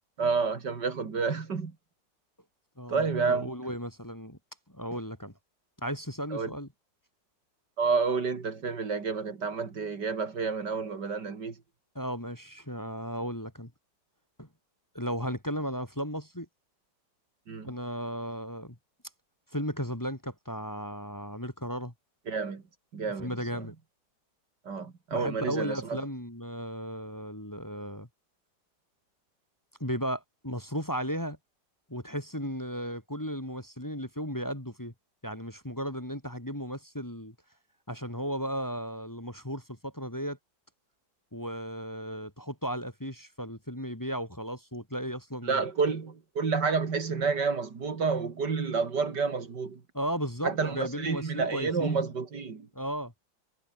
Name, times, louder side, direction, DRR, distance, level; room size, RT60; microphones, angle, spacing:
voice 1, 0.2-1.7 2.9-3.5 6.3-6.5 7.8-11.5 17.5-17.7 22.3-22.6 22.9-23.7 24.6-26.0 45.4-49.8 50.4-52.7, right 5 dB, 65° right, 3.1 m, -29 dB
voice 2, 2.8-4.4 4.7-5.3 5.8-6.7 11.9-13.7 14.4-14.5 14.9-16.5 17.6-18.8 19.5-21.9 23.2-23.7 25.1-28.1 29.8-31.4 31.9-34.9 35.2-37.3 37.9-40.4 41.3-45.6 49.9-52.0 52.7-53.1, equal, 10° left, 2.6 m, -35 dB
omnidirectional pair, 1.9 m